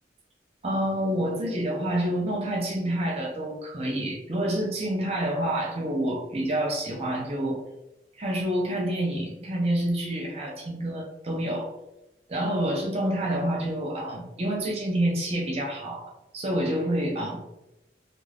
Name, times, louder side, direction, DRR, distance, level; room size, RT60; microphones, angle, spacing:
voice 1, 0.6-7.6 8.2-11.7 12.3-17.4, right 1 dB, 35° right, -1 dB, 0.5 m, -28 dB
2.5 x 2.3 x 3.2 m, 0.93 s
head